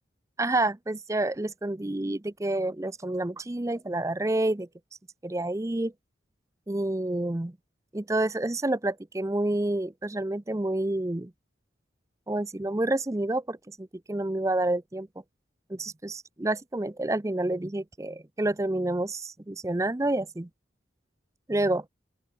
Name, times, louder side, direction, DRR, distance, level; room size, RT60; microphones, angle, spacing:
voice 1, 0.4-4.7 5.2-5.9 6.7-7.6 7.9-11.3 12.3-15.1 15.7-20.5 21.5-21.9, right 2 dB, 15° right, 0.5 m, -28 dB
open air
head